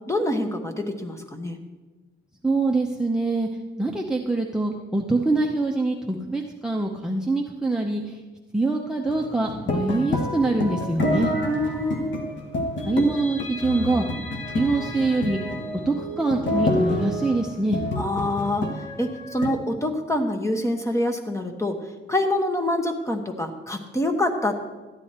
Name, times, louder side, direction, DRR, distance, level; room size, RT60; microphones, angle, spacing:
voice 1, 0.1-1.6 11.4-12.1 18.0-21.8 22.1-24.6, left 1 dB, 15° left, 5 dB, 1.1 m, -26 dB
voice 2, 2.4-3.5 3.8-8.2 8.5-11.3 12.9-14.0 14.5-15.5 15.9-17.8, right 2 dB, 5° right, -1 dB, 0.7 m, -24 dB
sound 1, 9.1-19.5, left 1 dB, 70° left, 1.2 m, -28 dB
13.0 x 9.8 x 4.3 m, 1.2 s
cardioid pair, 125°, 20 cm